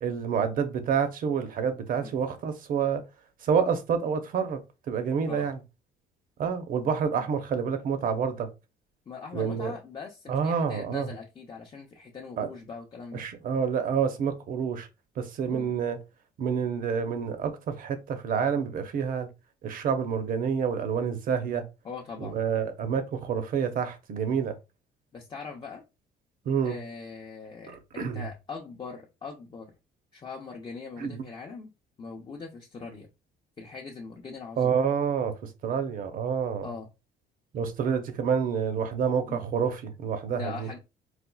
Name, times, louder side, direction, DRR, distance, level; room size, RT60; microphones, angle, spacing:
voice 1, 0.0-3.0 3.4-4.6 4.9-5.6 6.4-8.5 9.3-9.7 10.3-11.1 12.4-12.5 13.1-14.9 15.2-16.0 16.4-19.3 19.6-21.6 22.2-24.5 26.5-26.8 27.7-28.2 31.0-31.2 34.6-36.7 37.5-40.7, right 7 dB, 55° right, 0.7 m, -28 dB
voice 2, 9.1-13.2 15.5-15.7 21.8-22.4 25.1-25.8 26.6-29.7 30.1-31.7 32.0-33.1 33.6-34.8 36.6-36.9 39.3-39.4 40.3-40.8, left 5 dB, 30° left, 0.6 m, -41 dB
4.2 x 2.3 x 2.3 m
cardioid pair, 110°, 17 cm